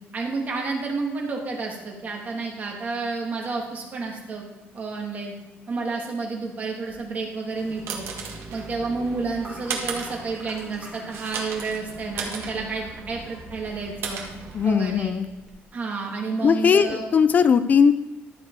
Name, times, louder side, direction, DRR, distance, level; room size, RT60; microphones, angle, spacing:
voice 1, 0.1-4.4 4.7-5.3 5.7-8.0 8.5-14.2 14.6-15.1 15.7-17.1, right 3 dB, 35° right, 0 dB, 2.2 m, -30 dB
sound 1, 6.9-15.5, right 1 dB, 10° right, 2.9 m, -49 dB
sound 2, 7.4-15.1, right 5 dB, 65° right, 1.7 m, -36 dB
voice 2, 14.5-15.3 16.4-17.9, left 6 dB, 40° left, 12 dB, 0.4 m, -19 dB
12.5 x 6.6 x 4.7 m, 1.1 s
cardioid pair, 140°, 4 cm